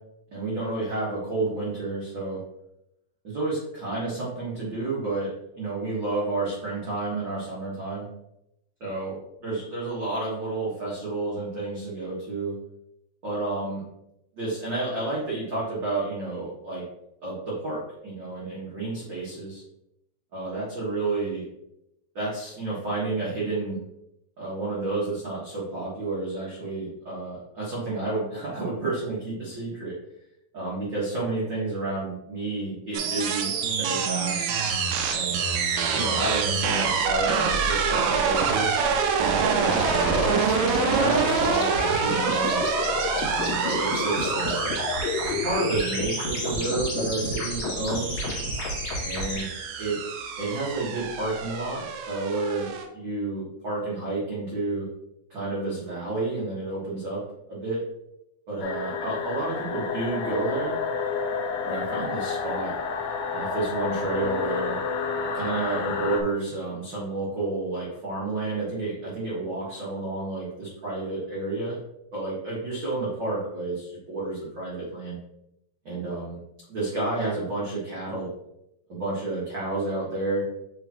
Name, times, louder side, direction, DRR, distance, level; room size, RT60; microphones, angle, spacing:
voice 1, 0.3-2.4 3.2-8.1 8.8-12.5 13.2-13.8 14.4-16.8 17.2-19.6 20.3-21.4 22.1-23.8 24.4-29.9 30.5-33.5 33.8-34.5 35.1-38.7 39.3-42.6 43.3-44.8 45.4-48.2 49.0-49.5 49.8-50.0 50.4-54.9 55.3-57.2 57.5-57.8 58.5-60.8 61.7-62.7 63.3-64.8 65.3-71.8 72.1-75.2 75.8-76.4 76.7-78.3 78.9-80.4, right 2 dB, 60° right, -8 dB, 1.2 m, -30 dB
sound 1, 32.9-52.8, right 6 dB, 80° right, 2.5 m, -27 dB
sound 2, 39.6-49.4, left 2 dB, 45° left, 2.7 m, -30 dB
sound 3, 58.6-66.2, left 5 dB, 80° left, 2.1 m, -30 dB
6.8 x 4.7 x 3.0 m, 0.83 s
omnidirectional pair, 4.7 m